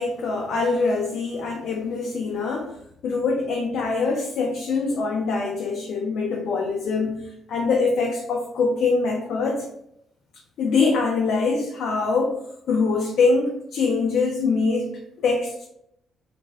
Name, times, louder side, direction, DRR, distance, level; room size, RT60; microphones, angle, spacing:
voice 1, 0.0-2.7 3.0-7.2 7.5-9.7 10.6-12.4 12.7-14.9 15.2-15.7, left 4 dB, 75° left, -1 dB, 0.4 m, -23 dB
2.4 x 2.0 x 3.3 m, 0.76 s
cardioid pair, 90°, 0 cm